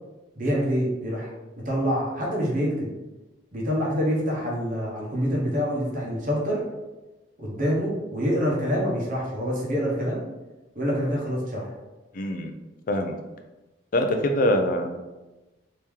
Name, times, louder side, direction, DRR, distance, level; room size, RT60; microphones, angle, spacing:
voice 1, 0.4-1.3 1.6-2.9 3.5-6.6 7.4-10.2 10.8-11.7, equal, 45° right, -3 dB, 0.9 m, -26 dB
voice 2, 12.1-12.5 12.9-13.2 13.9-15.0, left 1 dB, 45° left, 5 dB, 0.4 m, -24 dB
3.1 x 2.8 x 3.6 m, 1.1 s
head